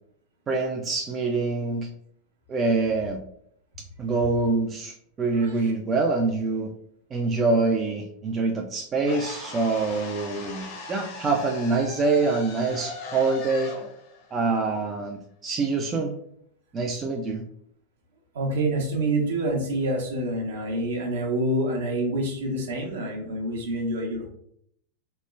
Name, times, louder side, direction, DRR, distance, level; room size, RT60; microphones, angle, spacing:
voice 1, 0.5-1.9 2.5-3.2 4.0-6.7 7.1-13.7 14.3-16.1 16.7-17.4, right 3 dB, 25° right, 2 dB, 0.3 m, -25 dB
voice 2, 5.3-5.7 18.3-24.3, right 1 dB, 60° right, 1 dB, 0.7 m, -27 dB
sound 1, 9.0-15.2, left 3 dB, 45° left, 0.7 m, -39 dB
3.0 x 2.1 x 2.2 m, 0.68 s
figure-of-eight pair, 90°, 0 cm